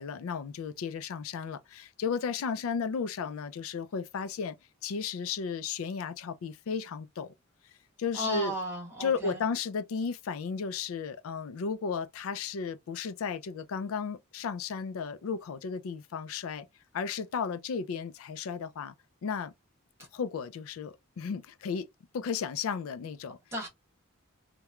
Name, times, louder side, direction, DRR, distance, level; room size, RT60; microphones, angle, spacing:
voice 1, 0.0-4.6 4.8-7.3 8.0-8.5 9.0-16.7 16.9-18.9 19.2-19.5 20.1-21.9 22.1-23.4, left 5 dB, 70° left, 0.4 m, -34 dB
voice 2, 8.1-9.4 23.5-23.7, equal, 10° right, 1.1 m, -34 dB
2.9 x 2.2 x 2.3 m
head